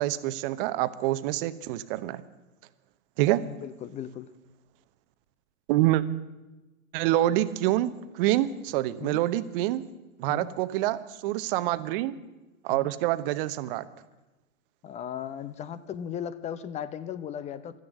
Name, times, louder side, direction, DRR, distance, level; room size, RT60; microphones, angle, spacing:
voice 1, 0.0-2.2 3.2-3.4 5.7-6.0 6.9-9.8 10.2-12.1 12.6-13.9, right 15 dB, 40° right, 14 dB, 0.9 m, -26 dB
voice 2, 3.5-4.3 9.0-9.2 10.3-10.5 12.7-12.9 14.8-17.8, left 9 dB, 15° left, 15 dB, 0.6 m, -37 dB
12.5 x 10.5 x 8.1 m, 1.1 s
hypercardioid pair, 110°, 41 cm